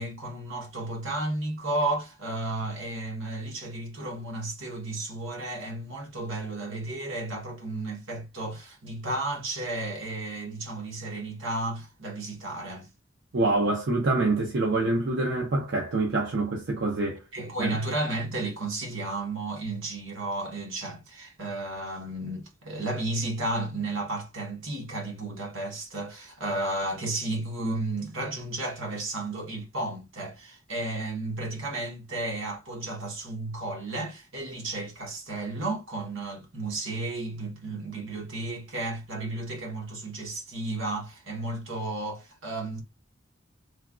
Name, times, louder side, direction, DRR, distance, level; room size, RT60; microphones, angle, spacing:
voice 1, 0.0-12.9 17.3-42.8, right 2 dB, 75° right, 1.0 m, -33 dB
voice 2, 13.3-17.2 17.6-17.8, right 2 dB, 55° right, 0.5 m, -26 dB
3.2 x 2.2 x 2.4 m
head